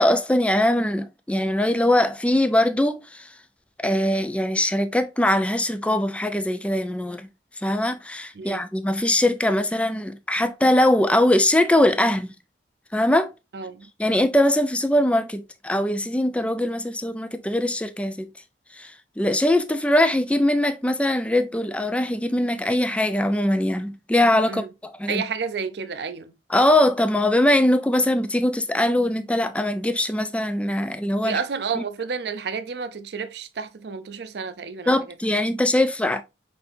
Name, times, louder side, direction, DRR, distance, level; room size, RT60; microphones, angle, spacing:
voice 1, 0.0-3.3 3.8-7.3 7.6-12.3 12.9-13.3 14.0-18.3 18.7-18.9 19.2-25.2 26.5-31.4 31.8-31.9 34.9-36.2, left 1 dB, 5° left, 0.3 m, -21 dB
voice 2, 13.5-13.9 24.5-24.7 25.1-26.3 31.2-34.9, right 5 dB, 70° right, 0.5 m, -30 dB
5.9 x 3.3 x 2.6 m
head